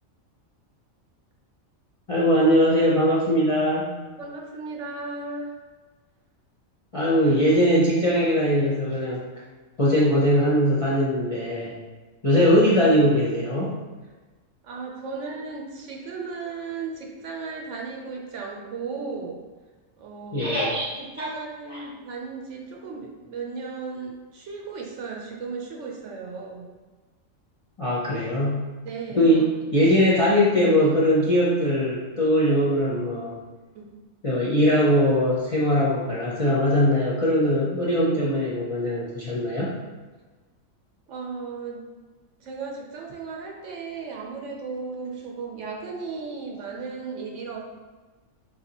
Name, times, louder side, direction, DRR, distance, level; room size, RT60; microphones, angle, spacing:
voice 1, 2.1-3.9 6.9-9.2 9.8-11.8 12.2-13.7 20.3-20.9 21.2-21.3 21.7-21.8 27.8-28.6 29.2-33.4 34.2-39.7, equal, 35° left, -7 dB, 0.6 m, -21 dB
voice 2, 4.2-5.5 12.2-12.5 14.6-19.4 20.0-20.6 21.0-26.6 28.8-29.5 33.7-33.9 41.1-41.8 42.4-47.6, right 4 dB, 65° right, -1 dB, 1.0 m, -35 dB
4.0 x 3.8 x 2.9 m, 1.3 s
omnidirectional pair, 1.4 m